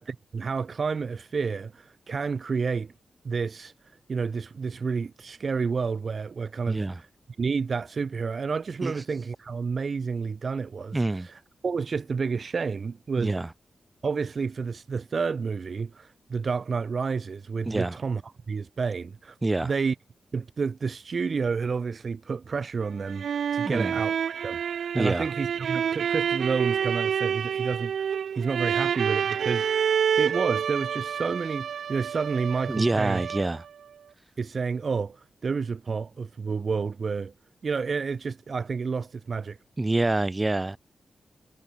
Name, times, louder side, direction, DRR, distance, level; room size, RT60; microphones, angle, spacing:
voice 1, 0.0-2.9 3.2-3.7 4.1-7.1 7.4-13.4 14.0-18.2 18.5-19.4 19.6-19.9 20.3-24.2 24.4-28.1 28.3-29.9 30.2-33.2 34.4-37.3 37.6-39.6, right 5 dB, 50° right, 1.5 m, -30 dB
voice 2, 6.7-7.0 8.8-8.9 10.9-11.3 13.2-13.5 17.6-18.0 19.4-19.7 23.6-23.9 24.9-25.3 32.7-33.6 39.8-40.8, right 2 dB, 20° right, 2.7 m, -26 dB
sound 1, 22.8-33.7, right 8 dB, 85° right, 2.0 m, -28 dB
wide cardioid pair, 95°, 0 cm